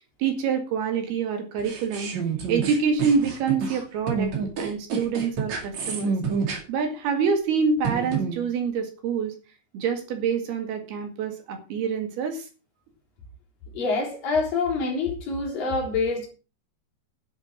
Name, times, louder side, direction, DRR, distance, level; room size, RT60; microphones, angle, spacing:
voice 1, 0.2-2.1 2.5-4.3 4.6-6.1 6.7-9.3 9.7-12.5, right 6 dB, 70° right, 3.7 m, -26 dB
sound 1, 1.6-6.6 7.8-8.4, right 5 dB, 45° right, 3.1 m, -28 dB
voice 2, 13.7-16.3, left 4 dB, 55° left, 5.2 m, -26 dB
11.0 x 7.2 x 6.2 m
omnidirectional pair, 4.9 m